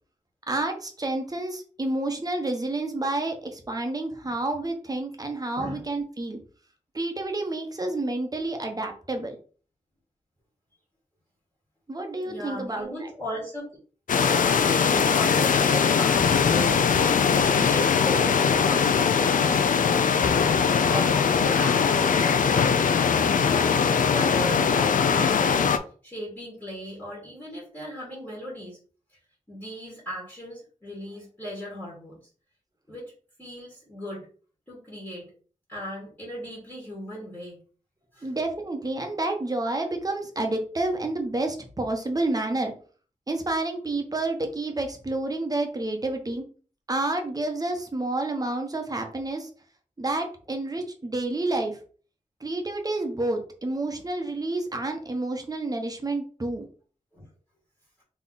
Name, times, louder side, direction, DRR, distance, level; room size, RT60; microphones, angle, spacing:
voice 1, 0.5-6.4 6.9-9.4 11.9-13.1 38.2-42.7 43.3-46.4 46.9-49.5 50.0-51.8 52.4-56.7, right 2 dB, 30° right, 4 dB, 1.0 m, -29 dB
voice 2, 12.2-13.7 14.1-22.7 23.2-25.7 26.0-28.8 29.5-32.2 32.9-33.0 33.4-34.3 34.7-35.3 35.7-37.6 38.1-38.3 57.1-57.2, equal, 10° left, -6 dB, 2.0 m, -37 dB
sound 1, 14.1-25.8, left 6 dB, 80° left, 0.4 m, -21 dB
3.6 x 3.1 x 4.0 m, 0.40 s
wide cardioid pair, 80°, 14 cm